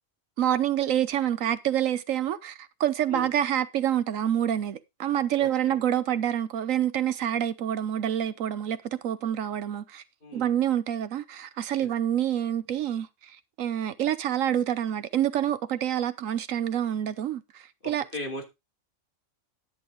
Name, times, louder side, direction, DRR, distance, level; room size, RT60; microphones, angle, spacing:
voice 1, 0.4-10.0 10.3-18.0, right 10 dB, 75° right, 1.1 m, -27 dB
voice 2, 5.4-5.8 10.2-10.5 11.8-11.9 17.8-18.4, left 1 dB, 40° left, 2.7 m, -38 dB
10.5 x 8.6 x 3.5 m
omnidirectional pair, 1.4 m